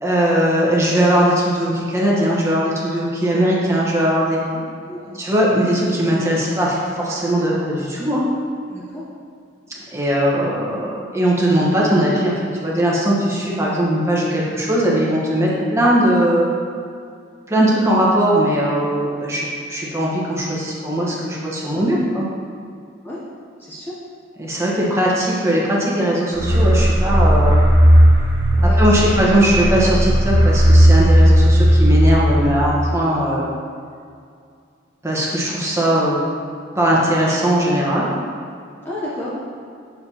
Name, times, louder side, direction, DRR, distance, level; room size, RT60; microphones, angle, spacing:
voice 1, 0.0-4.4 5.2-8.2 9.9-12.3 12.6-16.5 17.5-22.3 24.4-27.6 28.6-33.4 35.0-36.2 36.7-38.1, right 1 dB, 15° right, -5 dB, 1.1 m, -19 dB
voice 2, 4.9-5.2 8.6-9.0 14.3-14.6 23.0-23.2 23.6-24.0 28.5-29.5 36.7-36.9 38.8-39.4, left 1 dB, 10° left, -7 dB, 0.7 m, -32 dB
sound 1, 26.3-32.9, equal, 35° right, 1.5 m, -14 dB
6.8 x 6.8 x 2.8 m, 2.3 s
head